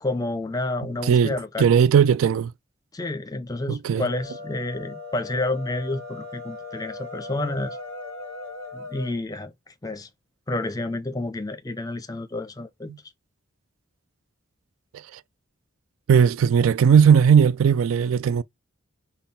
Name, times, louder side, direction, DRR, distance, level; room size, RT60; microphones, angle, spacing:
voice 1, 0.0-1.7 2.9-7.8 8.7-10.1 10.5-12.9, left 2 dB, 15° left, 0.5 m, -30 dB
voice 2, 1.0-2.5 3.7-4.1 15.1-15.2 16.1-18.4, right 7 dB, 75° right, 0.3 m, -18 dB
sound 1, 3.8-9.1, left 2 dB, 55° right, 2.9 m, -38 dB
5.4 x 2.3 x 4.0 m
head